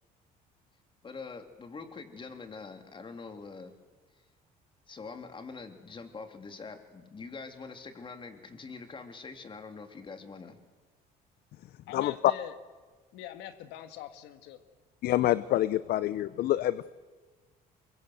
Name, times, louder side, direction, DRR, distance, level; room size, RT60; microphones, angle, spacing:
voice 1, 1.0-3.7 4.9-10.6, left 4 dB, 30° left, 7 dB, 2.9 m, -44 dB
voice 2, 11.9-12.6 13.1-14.6, left 11 dB, 90° left, 10 dB, 1.7 m, -44 dB
voice 3, 15.0-16.9, left 14 dB, 65° left, 16 dB, 0.7 m, -27 dB
23.5 x 22.0 x 7.9 m, 1.4 s
cardioid pair, 110°, 17 cm